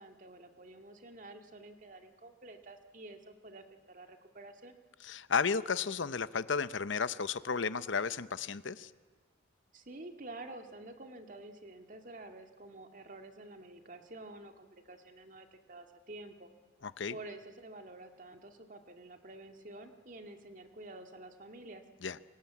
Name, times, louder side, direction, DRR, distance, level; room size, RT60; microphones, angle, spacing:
voice 1, 0.0-4.8 9.7-16.5 17.1-21.8, right 2 dB, 40° right, 5 dB, 2.1 m, -49 dB
voice 2, 5.0-8.9 16.8-17.2 22.0-22.2, left 5 dB, 65° left, 15 dB, 0.8 m, -33 dB
29.0 x 24.0 x 8.5 m, 1.5 s
head